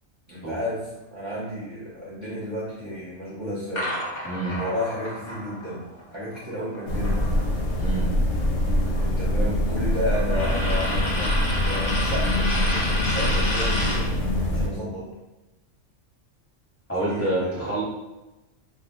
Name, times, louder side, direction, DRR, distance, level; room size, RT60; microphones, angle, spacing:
voice 1, 0.3-0.8 1.1-4.0 4.5-7.3 9.0-15.1 17.0-17.8, equal, 30° right, -7 dB, 0.6 m, -32 dB
sound 1, 3.7-7.8 8.1-14.1, left 1 dB, 45° left, 0.4 m, -31 dB
voice 2, 4.2-4.6 7.8-8.1 16.9-17.8, right 1 dB, 15° left, -8 dB, 0.7 m, -27 dB
sound 2, 6.9-14.7, left 1 dB, 70° left, 0.8 m, -24 dB
2.2 x 2.2 x 3.7 m, 1.0 s
omnidirectional pair, 1.3 m